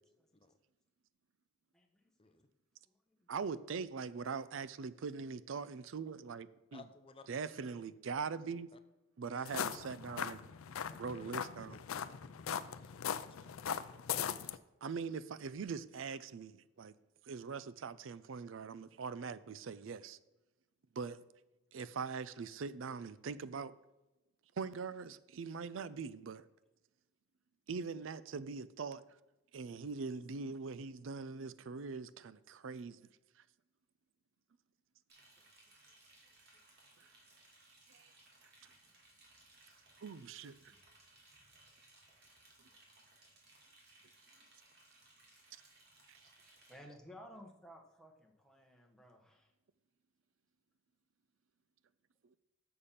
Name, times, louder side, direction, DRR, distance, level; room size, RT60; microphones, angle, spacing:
voice 1, 0.2-0.5 1.7-2.3 2.8-3.3 35.4-35.5 36.1-36.4 37.0-37.1 39.6-39.8 40.7-40.8 44.3-44.4 46.7-49.5, equal, 5° left, 1.1 m, -58 dB
voice 2, 3.3-6.8 7.3-8.7 9.2-10.4 11.0-11.8 14.8-16.9 17.2-20.2 21.0-21.2 21.7-23.8 24.6-26.4 27.7-29.0 29.5-33.0 37.0-37.1 37.9-38.1 40.0-40.7 46.1-46.2, right 5 dB, 65° right, 0.4 m, -42 dB
voice 3, 6.7-7.9 8.7-8.8 9.3-9.9 10.8-13.7, left 3 dB, 25° left, 0.5 m, -60 dB
sound 1, 9.4-14.6, left 8 dB, 85° left, 0.4 m, -40 dB
Liquid, 35.1-46.7, right 2 dB, 50° right, 2.5 m, -64 dB
6.8 x 6.7 x 5.7 m
head